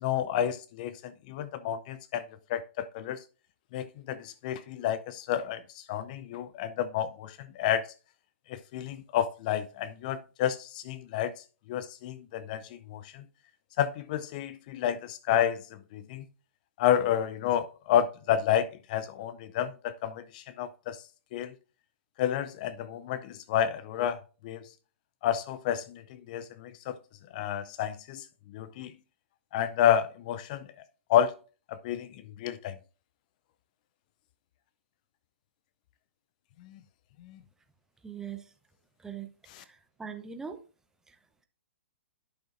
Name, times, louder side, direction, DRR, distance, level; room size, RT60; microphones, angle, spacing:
voice 1, 0.0-2.2 2.5-3.2 3.7-7.8 8.5-11.3 11.7-13.2 13.8-15.6 15.9-16.2 16.8-21.0 21.3-21.5 22.2-24.7 25.2-27.0 27.3-28.3 28.5-28.9 29.5-30.7 31.1-31.4 31.7-32.1 32.4-32.7 36.6-36.8 37.2-37.4 39.5-39.6, left 10 dB, 40° left, 0.4 m, -30 dB
voice 2, 38.0-38.4 39.0-39.3 39.6-40.6, right 7 dB, 5° right, 0.7 m, -40 dB
11.5 x 6.1 x 2.5 m
figure-of-eight pair, 120°, 7 cm